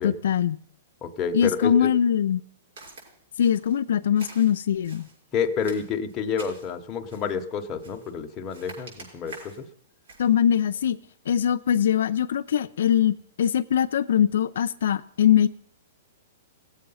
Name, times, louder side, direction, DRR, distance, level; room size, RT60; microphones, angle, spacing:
voice 1, 0.0-0.6 1.3-2.4 3.4-5.1 10.2-11.0 11.3-15.5, left 9 dB, 70° left, 10 dB, 0.4 m, -22 dB
voice 2, 1.0-1.9 5.3-9.7, left 6 dB, 20° left, 3 dB, 0.9 m, -29 dB
Walk footsteps, 2.8-3.1 3.4-3.8 4.1-5.2 5.6-6.7 7.1-7.4 7.8-8.1 8.5-9.6 10.0-10.3, right 3 dB, 75° right, 6.3 m, -46 dB
18.0 x 7.7 x 5.5 m, 0.66 s
hypercardioid pair, 165°, 0 cm